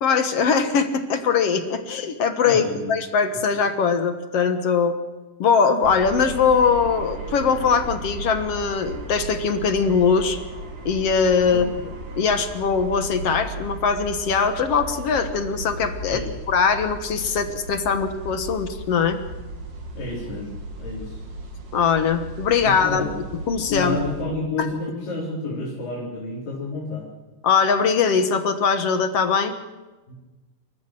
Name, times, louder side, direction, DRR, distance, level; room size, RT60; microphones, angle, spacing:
voice 1, 0.0-5.0 5.4-10.4 10.9-11.7 12.2-19.2 21.7-23.0 23.5-24.0 24.6-24.7 27.4-29.5, left 6 dB, 55° left, 9 dB, 2.1 m, -21 dB
voice 2, 2.4-2.9 3.3-3.4 11.4-11.6 16.1-16.3 19.9-20.5 20.8-21.2 22.6-23.1 23.7-27.1 30.1-30.2, left 2 dB, 80° left, -5 dB, 6.0 m, -30 dB
sound 1, 5.8-24.2, right 1 dB, 65° right, 4.8 m, -36 dB
28.0 x 14.5 x 7.8 m, 1.2 s
omnidirectional pair, 3.9 m